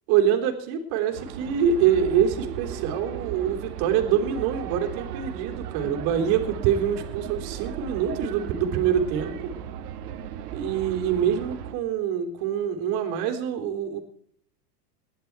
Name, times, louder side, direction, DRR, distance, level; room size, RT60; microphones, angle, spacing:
voice 1, 0.1-9.5 10.5-14.0, right 8 dB, 50° right, 3 dB, 3.5 m, -25 dB
sound 1, 1.1-11.7, right 9 dB, 70° right, 1.8 m, -36 dB
19.5 x 11.0 x 4.6 m, 0.67 s
supercardioid pair, 125°, 48 cm